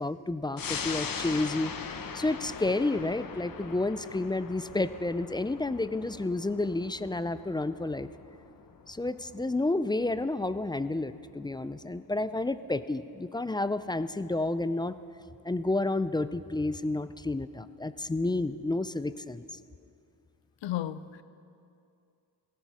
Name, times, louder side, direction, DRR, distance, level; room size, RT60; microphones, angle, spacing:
voice 1, 0.0-8.1 8.9-14.9 15.4-19.5, left 2 dB, 10° left, 14 dB, 0.4 m, -30 dB
sound 1, 0.6-11.5 11.9-12.0, left 6 dB, 50° left, 1.1 m, -41 dB
voice 2, 20.6-21.2, left 13 dB, 85° left, 15 dB, 0.6 m, -33 dB
17.0 x 14.5 x 4.8 m, 2.5 s
cardioid pair, 80°, 44 cm